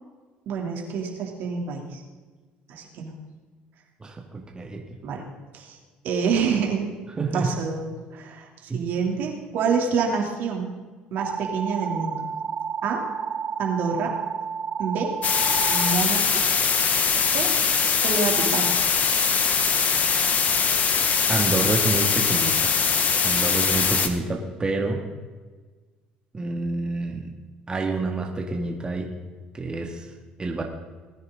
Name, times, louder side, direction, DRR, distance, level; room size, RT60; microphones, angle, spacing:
voice 1, 0.5-2.0 2.7-3.1 5.0-5.2 5.5-5.8 6.0-6.9 7.3-10.7 11.1-12.2 12.8-13.0 13.6-14.1 14.8-15.1 15.7-16.4 17.3-17.5 18.0-18.7, right 5 dB, 65° right, 0 dB, 3.0 m, -27 dB
voice 2, 4.0-4.8 7.2-7.5 8.7-8.8 20.6-20.8 21.3-22.7 23.2-25.0 26.3-27.3 27.7-29.1 29.5-30.1 30.4-30.6, right 3 dB, 25° right, 1 dB, 2.2 m, -28 dB
sound 1, 11.2-16.0, right 6 dB, 45° right, 0.8 m, -31 dB
sound 2, 15.2-24.1, left 6 dB, 45° left, 1.5 m, -22 dB
20.5 x 9.6 x 3.9 m, 1.4 s
supercardioid pair, 75°, 4 cm